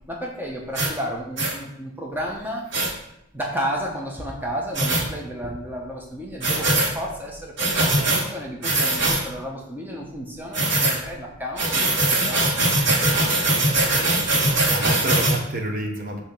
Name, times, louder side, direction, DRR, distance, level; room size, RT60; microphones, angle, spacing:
voice 1, 0.0-2.6 3.3-12.5 13.1-14.0, equal, 10° right, -1 dB, 0.8 m, -32 dB
sound 1, 0.7-0.9 1.4-1.5 2.7-2.9 4.7-5.0 6.4-6.9 7.6-8.2 8.6-9.2 10.5-11.0 11.6-15.4, right 2 dB, 55° right, 1.5 m, -21 dB
voice 2, 14.4-16.2, right 1 dB, 40° right, 2 dB, 0.8 m, -29 dB
6.8 x 2.9 x 5.8 m, 0.80 s
head